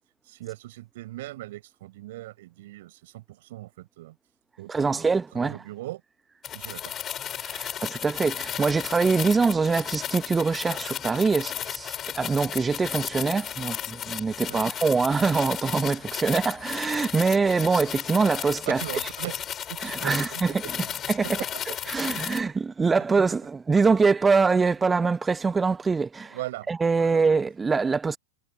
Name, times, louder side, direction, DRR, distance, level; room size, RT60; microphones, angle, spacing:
voice 1, 0.2-4.2 4.6-6.0 6.5-6.9 14.5-14.7 18.7-19.4 19.7-20.9 21.2-21.5 22.1-22.2 26.3-27.2, right 16 dB, 55° right, 5.2 m, -39 dB
voice 2, 4.7-5.6 7.4-18.8 19.8-20.5 21.1-21.4 21.9-26.4 26.7-28.2, right 4 dB, 15° right, 1.0 m, -24 dB
sound 1, 6.4-22.4, left 9 dB, 25° left, 5.2 m, -34 dB
figure-of-eight pair, 90°, 0 cm